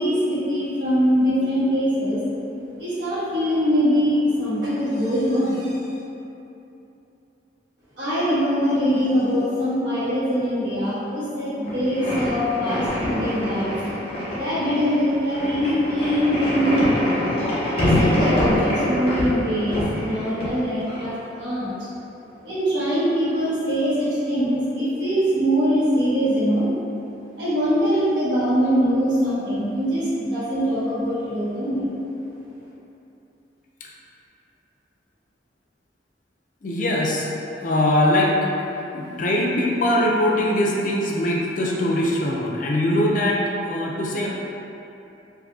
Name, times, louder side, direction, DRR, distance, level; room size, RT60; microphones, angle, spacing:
voice 1, 0.0-2.2 2.8-5.8 8.0-13.8 14.3-17.0 17.7-21.8 22.4-26.7 27.4-31.9, equal, 80° right, -11 dB, 1.2 m, -22 dB
sound 1, 11.6-21.1, left 1 dB, 30° left, 0.9 m, -25 dB
voice 2, 36.6-37.3 37.6-38.4 38.9-44.3, left 1 dB, 45° left, -3 dB, 0.4 m, -21 dB
2.6 x 2.4 x 3.7 m, 2.9 s
head